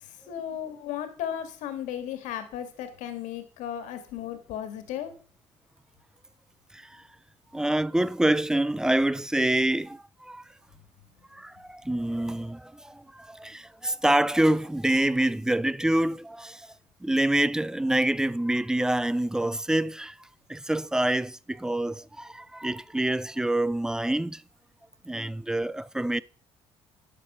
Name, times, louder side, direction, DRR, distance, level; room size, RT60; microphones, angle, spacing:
voice 1, 0.0-5.1, left 10 dB, 80° left, 1.7 m, -35 dB
voice 2, 7.5-10.4 11.3-16.7 17.0-20.2 20.5-24.4 25.1-26.2, right 1 dB, 5° right, 0.4 m, -26 dB
11.0 x 6.6 x 5.5 m
supercardioid pair, 85°, 13 cm